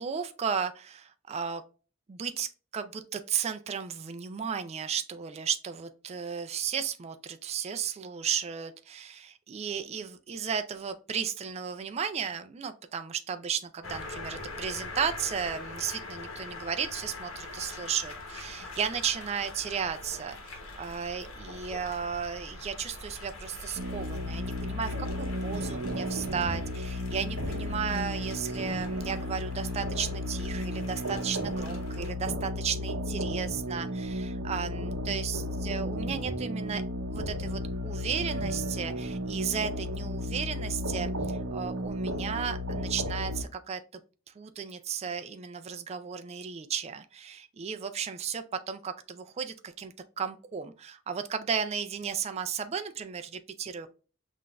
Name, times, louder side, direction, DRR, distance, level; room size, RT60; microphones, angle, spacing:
voice 1, 0.0-1.6 2.1-36.8 37.1-43.8 44.4-53.9, right 7 dB, 30° right, 9 dB, 0.3 m, -34 dB
sound 1, 13.8-32.1, left 3 dB, 75° left, 1.0 m, -44 dB
sound 2, 23.7-43.4, left 1 dB, 65° right, 0.7 m, -33 dB
5.7 x 2.5 x 2.2 m, 0.35 s
head